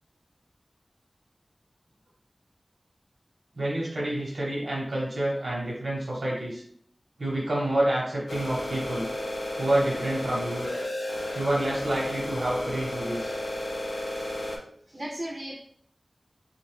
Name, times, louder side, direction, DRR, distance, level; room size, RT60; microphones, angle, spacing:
voice 1, 3.5-6.6 7.2-9.1 9.6-10.7 11.3-13.3, right 1 dB, 85° right, -4 dB, 0.8 m, -28 dB
sound 1, 8.3-14.6, left 1 dB, 85° left, 0.4 m, -33 dB
voice 2, 14.0-14.5 14.9-15.5, right 1 dB, 35° right, -2 dB, 0.4 m, -37 dB
2.5 x 2.2 x 3.1 m, 0.62 s
wide cardioid pair, 55°, 0 cm